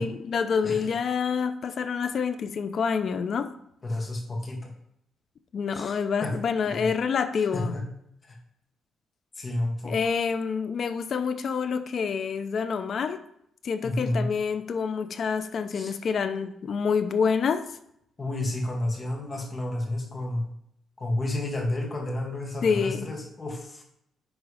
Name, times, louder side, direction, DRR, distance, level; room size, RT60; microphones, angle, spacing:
voice 1, 0.0-3.5 5.5-7.7 9.8-13.2 13.6-17.7 22.6-23.1, left 6 dB, 50° left, 10 dB, 0.6 m, -27 dB
voice 2, 3.8-4.7 5.7-6.0 6.2-6.4 6.7-6.9 7.5-7.8 8.2-8.4 9.4-10.0 13.8-14.3 15.7-15.9 18.2-20.5 21.0-23.8, left 1 dB, 30° left, 1 dB, 2.0 m, -31 dB
9.8 x 3.8 x 5.1 m, 0.75 s
cardioid pair, 120°, 0 cm